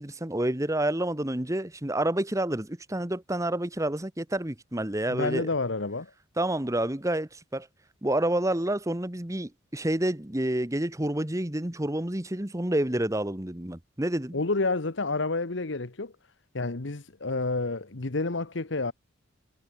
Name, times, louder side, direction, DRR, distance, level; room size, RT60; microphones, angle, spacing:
voice 1, 0.0-5.5 6.4-7.7 8.0-14.4, right 1 dB, 15° right, 1.2 m, -29 dB
voice 2, 5.1-6.1 14.3-16.1 16.5-18.9, left 3 dB, 65° left, 1.2 m, -29 dB
head